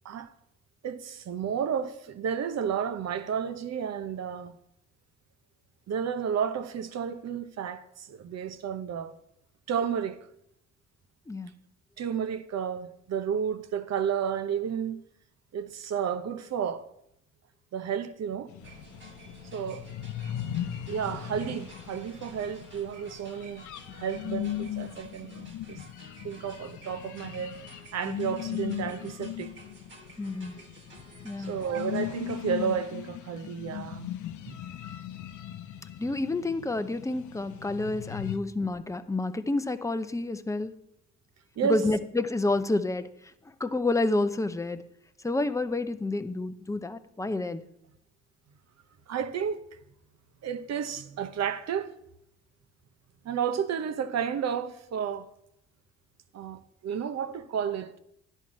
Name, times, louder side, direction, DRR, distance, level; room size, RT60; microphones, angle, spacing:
voice 1, 0.8-4.6 5.9-9.1 9.7-10.2 12.0-15.0 15.5-16.9 17.7-18.5 19.5-19.8 20.9-23.7 23.9-25.8 26.2-27.6 27.9-29.5 31.5-34.1 34.4-34.6 41.6-41.8 49.1-49.6 50.4-51.9 53.2-55.3 56.3-58.0, right 7 dB, 60° right, 0.9 m, -32 dB
sound 1, 18.5-38.4, left 12 dB, 80° left, 0.7 m, -38 dB
sound 2, 18.6-32.5, right 3 dB, 40° right, 1.4 m, -53 dB
voice 2, 30.2-30.6 31.2-31.5 36.0-40.7 41.6-43.1 43.6-44.8 45.2-47.6, left 2 dB, 10° left, 0.6 m, -29 dB
10.5 x 4.6 x 7.3 m
cardioid pair, 90°, 30 cm